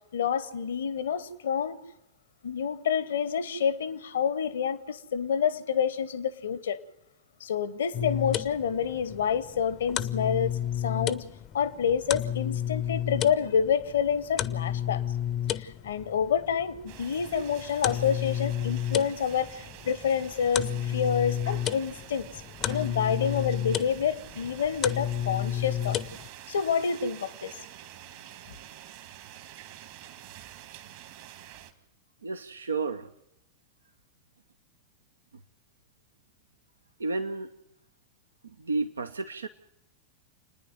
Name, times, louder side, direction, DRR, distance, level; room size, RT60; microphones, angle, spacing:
voice 1, 0.1-1.8 2.4-6.8 7.4-11.2 11.5-15.0 15.5-22.3 22.7-26.0 26.5-27.6, left 7 dB, 65° left, 1.1 m, -28 dB
sound 1, 7.9-26.3, left 10 dB, 30° left, 0.7 m, -32 dB
sound 2, 16.9-31.7, right 12 dB, 50° right, 1.7 m, -47 dB
voice 2, 32.2-33.1 37.0-37.5 38.4-39.5, right 3 dB, 75° right, 0.8 m, -32 dB
29.0 x 10.0 x 9.4 m
figure-of-eight pair, 90°, 0 cm